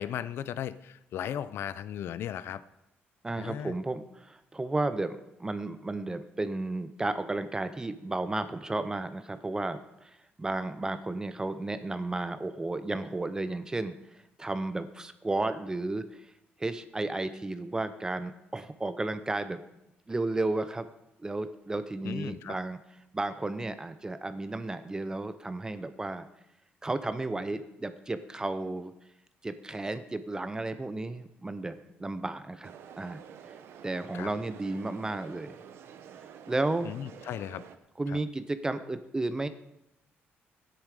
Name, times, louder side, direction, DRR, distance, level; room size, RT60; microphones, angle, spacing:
voice 1, 0.0-2.6 3.4-3.7 22.0-22.5 34.1-34.3 36.8-37.6 38.1-38.2, left 10 dB, 70° left, 16 dB, 0.5 m, -36 dB
voice 2, 3.2-16.3 16.6-19.6 20.1-20.9 21.2-22.8 23.1-26.2 26.8-28.9 29.4-33.2 33.8-35.6 36.5-36.9 38.0-39.5, right 2 dB, 15° right, 11 dB, 0.6 m, -33 dB
sound 1, 32.6-37.8, right 8 dB, 75° right, 0.9 m, -49 dB
12.5 x 10.0 x 4.9 m, 0.85 s
cardioid pair, 110°, 4 cm